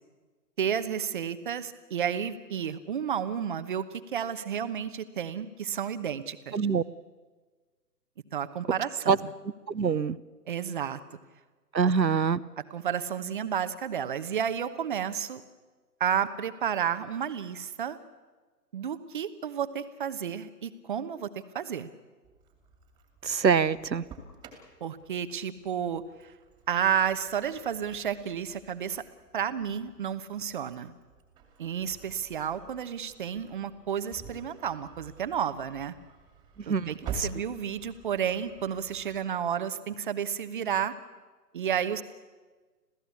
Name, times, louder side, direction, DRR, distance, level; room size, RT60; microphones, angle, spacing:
voice 1, 0.6-6.6 8.3-9.3 10.5-11.0 11.8-11.9 12.7-15.4 16.0-18.0 18.7-21.3 21.5-21.9 24.8-26.3 26.7-29.0 29.3-30.9 31.6-35.9 36.7-40.9 41.5-42.0, right 8 dB, 30° right, 11 dB, 1.1 m, -31 dB
voice 2, 6.5-6.8 9.1-9.2 9.7-10.2 11.7-12.4 23.2-24.0 36.7-37.3, right 6 dB, 85° right, 16 dB, 1.0 m, -25 dB
Engine starting, 22.2-39.2, right 4 dB, 10° right, 2.5 m, -48 dB
27.0 x 16.5 x 8.3 m, 1.3 s
figure-of-eight pair, 145°, 50 cm